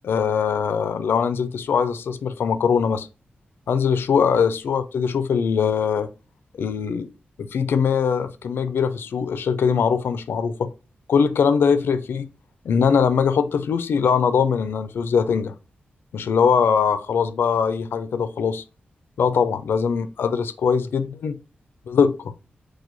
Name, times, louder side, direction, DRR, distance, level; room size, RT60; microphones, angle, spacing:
voice 1, 0.0-3.1 3.7-6.1 6.6-7.1 7.4-10.7 11.1-12.2 12.6-15.5 16.1-18.6 19.2-21.4 21.9-22.3, left 6 dB, 90° left, 0.5 m, -21 dB
4.7 x 2.2 x 3.9 m
wide cardioid pair, 165°, 4 cm